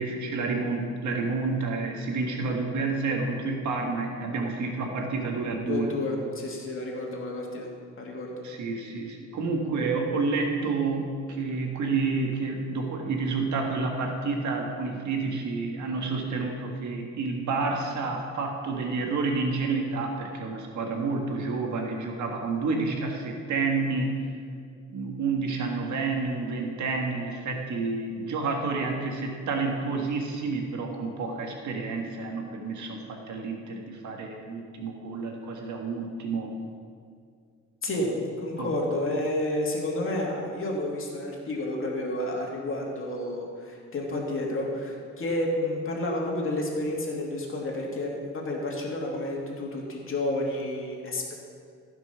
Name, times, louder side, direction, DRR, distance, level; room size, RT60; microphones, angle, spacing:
voice 1, 0.0-5.9 8.4-24.2 24.9-36.5 38.6-38.7, right 3 dB, 70° right, 1 dB, 1.8 m, -29 dB
voice 2, 5.7-7.7 8.0-8.3 37.8-38.1 38.4-51.3, left 1 dB, 45° left, -1 dB, 2.6 m, -30 dB
15.5 x 6.0 x 5.7 m, 2.2 s
cardioid pair, 90°, 30 cm